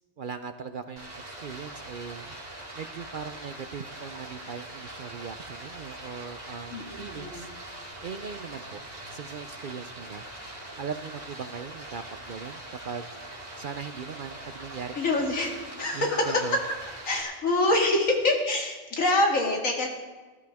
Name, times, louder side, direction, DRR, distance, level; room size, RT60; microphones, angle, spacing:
voice 1, 0.2-2.3 2.7-7.5 8.0-8.8 9.1-10.2 10.8-13.0 13.6-15.0 15.9-16.6, right 6 dB, 55° right, 9 dB, 0.6 m, -39 dB
Stream, 1.0-17.2, right 1 dB, 30° right, 3.2 m, -42 dB
voice 2, 6.7-7.4 15.0-15.5 15.8-16.4 17.0-19.9, left 2 dB, 90° left, 1 dB, 2.4 m, -25 dB
19.5 x 12.0 x 3.5 m, 1.3 s
omnidirectional pair, 1.3 m